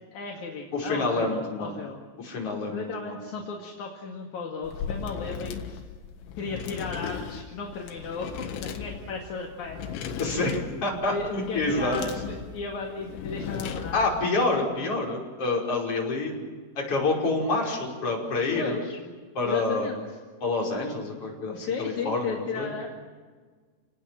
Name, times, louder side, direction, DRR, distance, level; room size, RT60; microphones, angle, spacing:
voice 1, 0.1-2.0 2.7-5.8 6.4-9.9 11.1-14.1 18.6-19.0 19.4-20.0 21.5-22.9, left 4 dB, 50° left, 0 dB, 3.0 m, -35 dB
voice 2, 0.7-1.8 2.2-3.2 10.2-12.0 13.9-16.3 16.8-18.8 19.4-19.9 20.4-22.7, left 2 dB, 30° left, -2 dB, 6.0 m, -27 dB
sound 1, 4.6-14.2, left 7 dB, 80° left, 4.0 m, -37 dB
30.0 x 19.0 x 7.7 m, 1.5 s
omnidirectional pair, 5.4 m